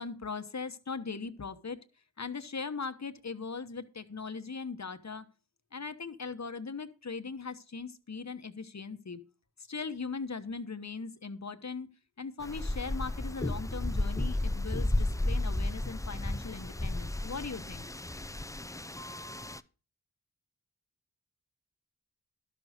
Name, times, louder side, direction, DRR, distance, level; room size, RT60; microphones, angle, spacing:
voice 1, 0.0-1.8 2.2-5.3 5.7-9.2 9.7-11.9 12.2-17.9, left 4 dB, 45° left, 10 dB, 1.1 m, -39 dB
sound 1, 12.4-19.6, left 1 dB, 10° left, 0.5 m, -33 dB
12.0 x 6.5 x 5.0 m, 0.35 s
cardioid pair, 40°, 37 cm